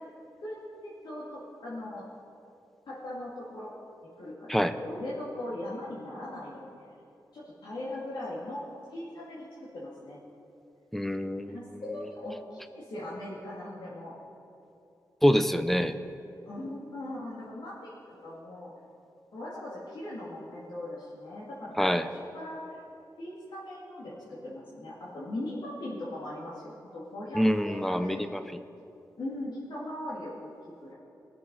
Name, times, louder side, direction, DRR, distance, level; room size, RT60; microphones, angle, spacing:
voice 1, 0.4-2.0 2.9-3.7 4.2-6.7 7.3-8.6 8.9-9.5 9.7-10.2 11.5-14.1 16.4-18.7 19.3-22.8 23.2-28.3 29.2-30.9, left 1 dB, 80° left, -7 dB, 2.3 m, -39 dB
voice 2, 10.9-11.6 15.2-15.9 21.8-22.1 27.3-28.4, equal, 5° left, 11 dB, 0.5 m, -25 dB
19.5 x 6.7 x 5.4 m, 2.7 s
wide cardioid pair, 105°, 7 cm